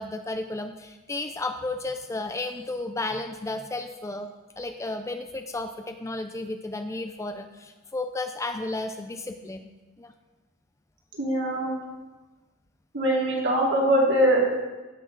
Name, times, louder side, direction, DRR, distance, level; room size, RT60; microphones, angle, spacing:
voice 1, 0.0-4.3 4.6-9.7 10.0-10.1, left 2 dB, 15° left, 7 dB, 0.4 m, -33 dB
voice 2, 11.2-11.7 12.9-14.6, right 1 dB, 55° right, -2 dB, 2.4 m, -22 dB
16.5 x 6.3 x 3.8 m, 1.2 s
head